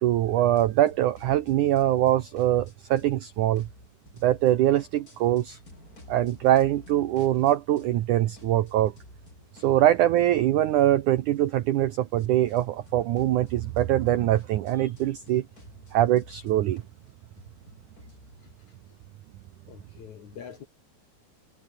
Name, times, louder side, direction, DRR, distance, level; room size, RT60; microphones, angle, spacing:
voice 1, 0.0-3.7 4.2-5.6 6.1-8.9 9.5-15.5 15.9-16.8, right 13 dB, 90° right, 1.7 m, -23 dB
sound 1, 0.6-3.2 3.5-8.1 8.4-18.6, left 2 dB, 20° left, 5.1 m, -53 dB
voice 2, 19.7-20.7, left 8 dB, 55° left, 2.5 m, -44 dB
omnidirectional pair, 4.9 m